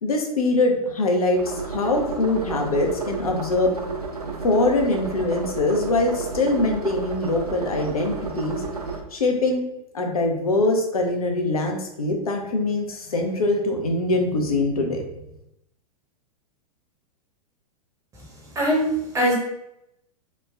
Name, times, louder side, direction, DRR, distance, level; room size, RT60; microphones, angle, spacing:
voice 1, 0.0-3.8 4.4-8.6 9.1-9.6 9.9-15.0, left 2 dB, 75° left, 2 dB, 0.5 m, -23 dB
sound 1, 1.3-9.0, right 4 dB, 85° right, 0.4 m, -32 dB
voice 2, 18.6-19.3, equal, 15° right, -3 dB, 0.7 m, -21 dB
3.1 x 2.1 x 2.3 m, 0.81 s
figure-of-eight pair, 100°, 19 cm